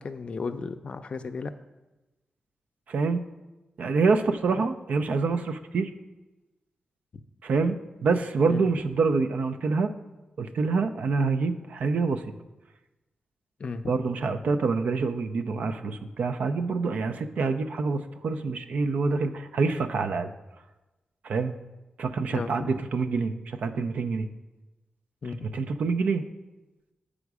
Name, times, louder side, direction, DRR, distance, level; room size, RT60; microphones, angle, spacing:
voice 1, 0.0-1.5 4.5-4.6 8.5-8.6 13.6-13.9 22.3-22.8 25.2-25.5, left 4 dB, 45° left, 9 dB, 0.4 m, -34 dB
voice 2, 2.9-3.2 3.8-5.9 7.4-7.8 8.0-9.9 10.4-12.2 13.9-20.3 21.2-21.6 22.0-24.3 25.4-26.2, right 4 dB, 75° right, 8 dB, 0.5 m, -26 dB
8.0 x 5.0 x 4.8 m, 1.1 s
wide cardioid pair, 145°, 3 cm